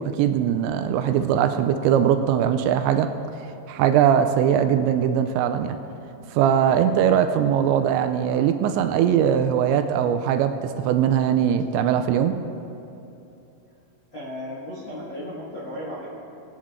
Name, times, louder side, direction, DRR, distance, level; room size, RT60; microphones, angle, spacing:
voice 1, 0.0-3.1 3.7-5.8 6.3-12.3, right 9 dB, 85° right, 8 dB, 2.7 m, -21 dB
voice 2, 6.4-6.8 14.1-16.0, left 1 dB, 50° left, -8 dB, 1.4 m, -35 dB
20.5 x 8.7 x 3.6 m, 2.8 s
omnidirectional pair, 5.3 m